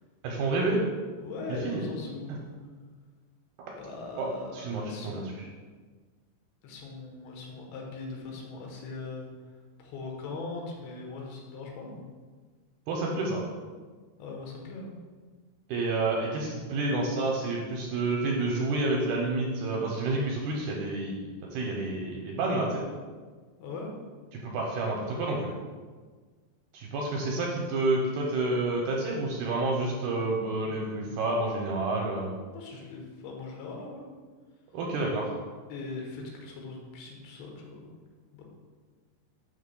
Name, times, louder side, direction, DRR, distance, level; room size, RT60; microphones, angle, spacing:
voice 1, 0.2-0.8 1.5-1.8 2.3-2.4 3.6-3.7 4.2-4.3 4.5-5.5 12.9-13.4 15.7-21.2 21.5-22.8 24.3-25.5 26.7-32.3 34.7-35.3, right 2 dB, 80° right, -1 dB, 2.3 m, -29 dB
voice 2, 1.2-2.5 3.8-5.3 6.6-9.3 9.8-12.0 14.2-14.9 23.6-23.9 32.5-34.0 35.7-37.9 38.3-38.4, left 3 dB, 85° left, 0 dB, 3.3 m, -40 dB
11.5 x 5.3 x 2.2 m, 1.4 s
omnidirectional pair, 5.1 m